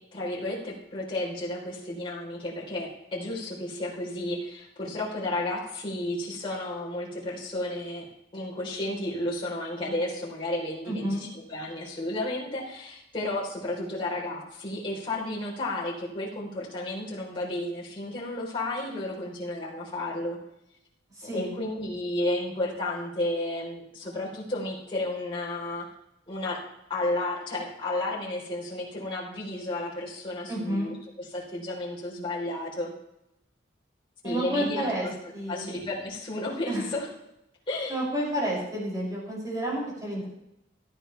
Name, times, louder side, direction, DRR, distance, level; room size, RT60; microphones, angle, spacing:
voice 1, 0.1-8.0 8.3-20.4 21.3-25.8 26.3-26.6 26.9-32.9 34.2-35.1 35.5-37.1 37.7-38.0, left 1 dB, 30° left, -6 dB, 3.9 m, -32 dB
voice 2, 10.9-11.2 21.1-21.5 30.5-30.9 34.2-35.1 35.3-35.7 36.7-36.9 37.9-40.3, right 1 dB, 20° right, -5 dB, 6.8 m, -30 dB
17.5 x 12.5 x 3.4 m, 0.83 s
head